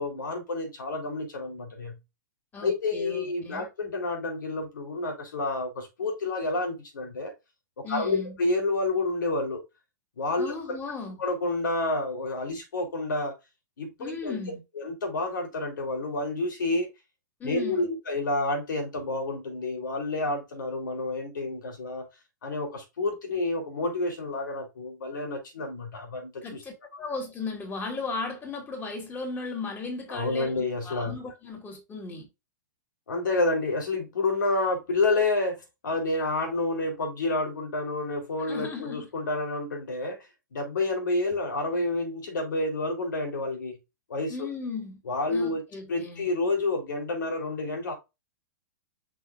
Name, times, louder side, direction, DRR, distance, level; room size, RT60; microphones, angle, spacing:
voice 1, 0.0-2.0 2.6-7.3 7.8-9.6 10.2-10.8 11.2-13.3 13.8-14.4 14.8-16.9 17.4-22.1 22.4-26.6 30.1-31.2 33.1-40.2 40.5-43.8 44.1-44.5 45.1-45.6 45.9-47.9, left 2 dB, 85° left, 3.8 m, -29 dB
voice 2, 2.5-3.7 7.8-8.4 10.4-11.2 14.0-14.6 17.4-17.9 26.4-32.3 38.5-39.1 44.3-45.0 45.3-46.2, left 4 dB, 20° left, 3.2 m, -36 dB
6.3 x 6.1 x 2.5 m
hypercardioid pair, 130°, 10 cm